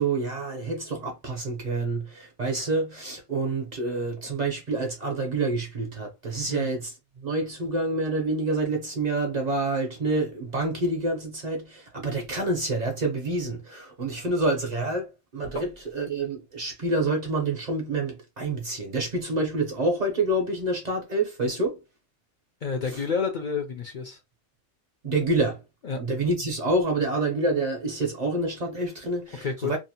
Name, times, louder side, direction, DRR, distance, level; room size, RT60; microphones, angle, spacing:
voice 1, 0.0-6.9 7.2-21.8 22.9-23.0 25.0-25.6 26.0-29.8, right 2 dB, 45° right, 0.8 m, -27 dB
voice 2, 22.6-24.2 25.8-26.0 29.4-29.8, left 5 dB, 55° left, 0.6 m, -29 dB
2.7 x 2.0 x 2.8 m
omnidirectional pair, 1.2 m